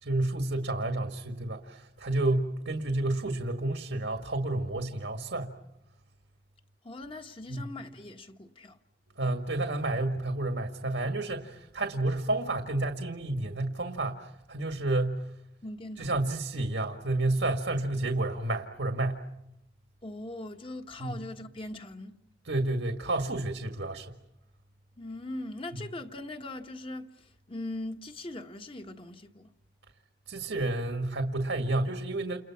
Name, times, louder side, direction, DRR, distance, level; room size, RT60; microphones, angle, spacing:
voice 1, 0.0-5.5 7.5-7.7 9.2-15.2 16.0-19.2 21.0-21.1 22.4-24.1 30.3-32.4, right 2 dB, 85° right, 1.8 m, -30 dB
voice 2, 6.8-8.8 15.6-16.1 20.0-22.2 25.0-29.5, left 1 dB, 30° left, 1.5 m, -40 dB
29.5 x 29.0 x 5.9 m
head